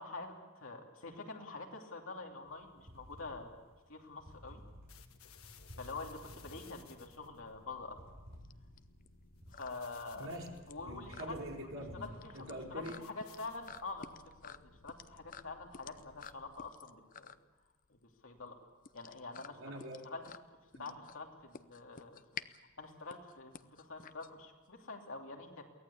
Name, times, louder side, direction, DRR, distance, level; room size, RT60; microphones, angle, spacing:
voice 1, 0.0-3.6 3.9-4.6 5.8-8.0 9.5-10.3 10.7-11.4 12.0-17.3 17.9-18.0 18.2-18.6 18.9-19.6 20.0-20.2 20.5-22.5 22.8-25.6, left 3 dB, 70° left, 1 dB, 3.0 m, -46 dB
sound 1, 2.4-12.0, equal, 50° right, 7.1 m, -55 dB
sound 2, 4.9-16.7, left 5 dB, 85° left, 1.5 m, -61 dB
sound 3, 7.2-24.8, left 7 dB, 40° left, 0.6 m, -52 dB
voice 2, 10.1-10.5 10.8-13.0 19.5-20.1 20.7-20.9, right 1 dB, 65° right, -1 dB, 4.5 m, -45 dB
23.5 x 17.5 x 8.5 m, 1.3 s
head